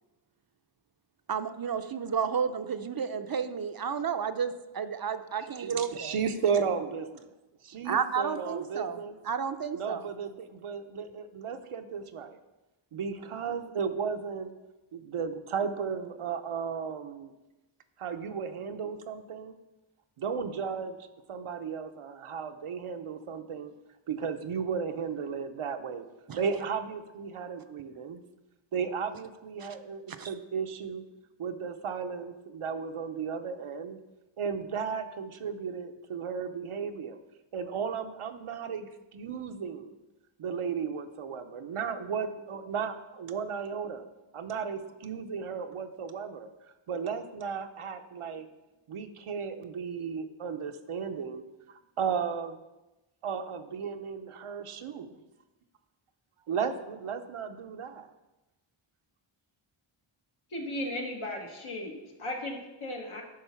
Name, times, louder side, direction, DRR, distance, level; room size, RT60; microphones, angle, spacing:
voice 1, 1.3-6.1 7.9-9.0 9.2-10.0 26.3-26.4 29.6-29.7 30.2-30.3, right 6 dB, 45° right, 10 dB, 0.5 m, -31 dB
voice 2, 5.4-7.3 7.6-9.2 9.7-12.4 12.9-14.5 14.9-17.3 18.0-19.5 20.2-21.0 21.3-23.7 24.1-26.1 26.4-28.2 28.7-31.0 31.4-34.0 34.4-37.2 37.5-40.0 40.4-44.1 44.3-46.5 46.9-48.5 48.9-52.6 53.2-55.2 56.5-58.1, right 6 dB, 80° right, 8 dB, 0.8 m, -34 dB
voice 3, 60.5-63.2, left 1 dB, 75° left, 1 dB, 1.5 m, -36 dB
10.5 x 3.8 x 5.6 m, 1.0 s
wide cardioid pair, 80°, 50 cm